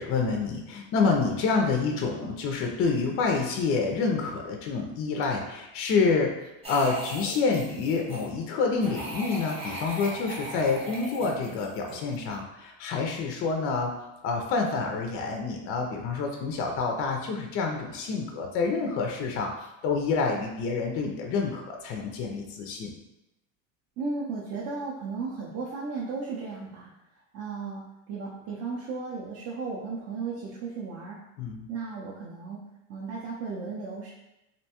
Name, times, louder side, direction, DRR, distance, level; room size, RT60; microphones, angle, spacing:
voice 1, 0.0-6.3 6.7-13.9 14.2-19.5 19.8-22.9 31.4-31.7, left 4 dB, 35° left, 2 dB, 0.4 m, -28 dB
sound 1, 6.6-8.3 8.8-12.3, right 1 dB, 15° right, 0.9 m, -38 dB
voice 2, 24.0-26.9 27.3-31.2 31.7-32.6 32.9-34.1, right 4 dB, 40° right, -4 dB, 0.5 m, -35 dB
2.6 x 2.2 x 2.8 m, 0.91 s
supercardioid pair, 110°, 39 cm